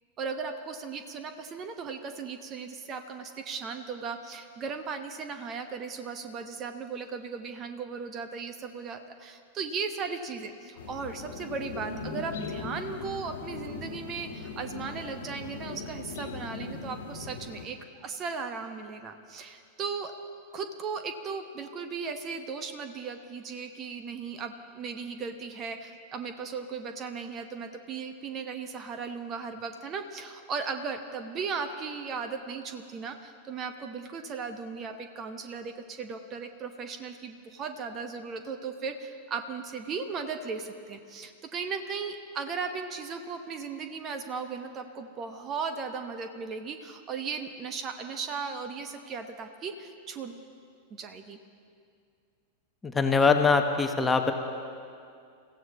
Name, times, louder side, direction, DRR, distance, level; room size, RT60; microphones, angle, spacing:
voice 1, 0.2-20.1 20.5-50.4 51.0-51.4, right 5 dB, 30° right, 7 dB, 1.2 m, -37 dB
sound 1, 10.8-17.7, left 4 dB, 60° left, 1.5 m, -39 dB
voice 2, 52.8-54.3, left 4 dB, 15° left, 5 dB, 1.1 m, -23 dB
29.5 x 15.5 x 3.0 m, 2.3 s
figure-of-eight pair, 90°, 0 cm